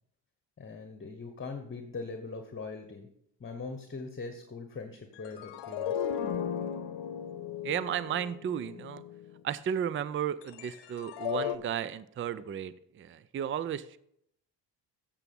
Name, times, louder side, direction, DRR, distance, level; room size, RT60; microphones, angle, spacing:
voice 1, 0.6-3.1 3.4-6.1, left 4 dB, 30° left, 6 dB, 1.1 m, -41 dB
sound 1, 5.2-9.4 10.4-11.6, left 8 dB, 75° left, 0.9 m, -36 dB
voice 2, 7.6-9.0 9.4-14.0, right 9 dB, 30° right, 16 dB, 0.4 m, -34 dB
8.2 x 7.0 x 5.3 m, 0.71 s
supercardioid pair, 65°, 42 cm